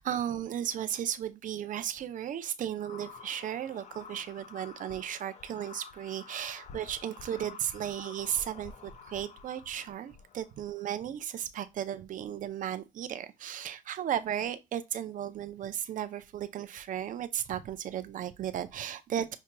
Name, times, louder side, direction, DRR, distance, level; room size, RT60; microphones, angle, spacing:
voice 1, 0.0-19.4, right 10 dB, 50° right, 0.6 m, -35 dB
sound 1, 2.8-10.8, left 5 dB, 45° left, 0.5 m, -50 dB
6.0 x 2.7 x 2.2 m
cardioid pair, 110°, 17 cm